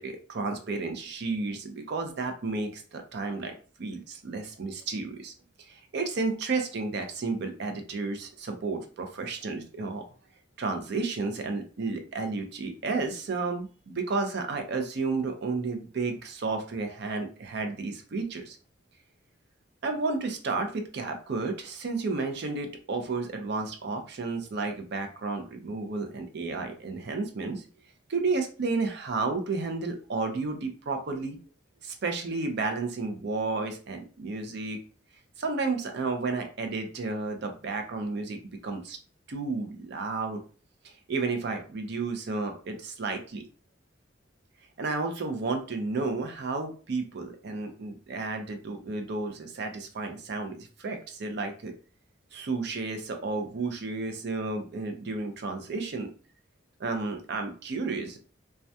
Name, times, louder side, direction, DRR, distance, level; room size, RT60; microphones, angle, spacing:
voice 1, 0.0-3.5 3.8-5.3 5.7-10.0 10.6-18.6 19.8-27.6 28.1-31.4 31.8-34.8 35.4-39.0 39.3-40.4 41.1-43.5 44.8-51.7 52.3-56.1 56.8-58.2, right 3 dB, 60° right, 5 dB, 0.5 m, -32 dB
2.2 x 2.2 x 2.6 m, 0.38 s
head